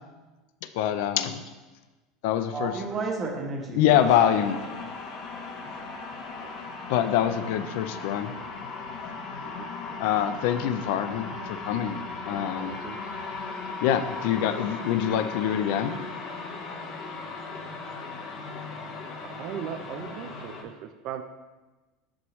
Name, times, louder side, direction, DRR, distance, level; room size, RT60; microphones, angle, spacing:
voice 1, 0.7-1.4 2.2-2.7 3.8-4.6 6.9-8.3 10.0-12.0 12.3-12.7 13.8-15.9, left 10 dB, 70° left, 11 dB, 0.4 m, -25 dB
voice 2, 2.5-4.6, right 3 dB, 25° right, 0 dB, 1.1 m, -33 dB
sound 1, 3.9-20.6, left 3 dB, 50° left, 1.0 m, -37 dB
voice 3, 12.3-13.0 19.2-21.2, right 10 dB, 55° right, 7 dB, 0.3 m, -38 dB
6.2 x 6.0 x 3.1 m, 1.2 s
supercardioid pair, 135°, 0 cm